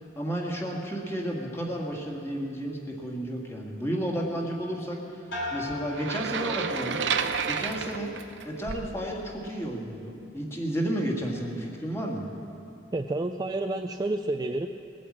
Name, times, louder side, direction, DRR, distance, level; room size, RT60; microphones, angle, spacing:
voice 1, 0.2-7.0 7.4-8.1 8.4-12.3, right 1 dB, 15° left, -1 dB, 1.8 m, -32 dB
sound 1, 5.3-7.0 7.4-8.0, left 2 dB, 80° left, 3.6 m, -38 dB
sound 2, 5.9-9.0, right 6 dB, 75° right, 0.7 m, -30 dB
voice 2, 12.9-14.7, right 2 dB, 20° right, 5 dB, 0.4 m, -29 dB
20.5 x 8.5 x 7.4 m, 2.7 s
head